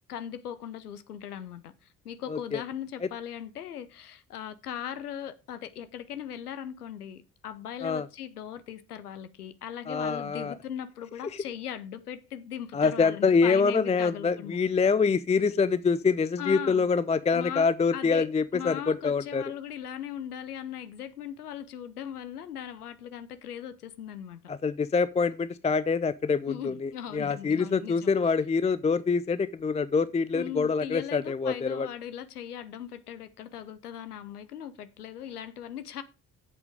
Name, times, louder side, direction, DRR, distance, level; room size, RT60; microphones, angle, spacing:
voice 1, 0.1-14.6 16.4-16.9 17.3-18.3 18.5-24.4 26.5-28.1 30.3-36.0, left 9 dB, 85° left, 0.7 m, -39 dB
voice 2, 2.3-2.6 7.8-8.1 9.9-10.5 12.7-19.4 24.5-31.9, left 5 dB, 15° left, 0.5 m, -25 dB
8.8 x 7.9 x 4.8 m
figure-of-eight pair, 40°, 44 cm